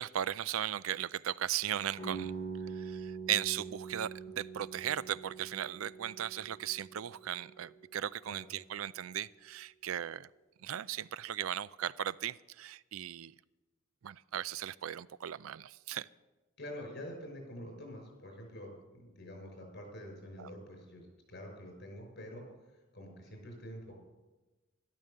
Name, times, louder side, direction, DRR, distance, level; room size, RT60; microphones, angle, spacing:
voice 1, 0.0-2.3 2.7-10.3 10.6-13.3 14.0-16.1 20.4-20.5, right 10 dB, 80° right, 0.4 m, -37 dB
sound 1, 2.0-7.7, right 5 dB, 15° left, 6.9 m, -44 dB
voice 2, 16.6-22.4 22.9-23.9, equal, 55° left, 5.9 m, -47 dB
12.5 x 12.5 x 6.7 m
head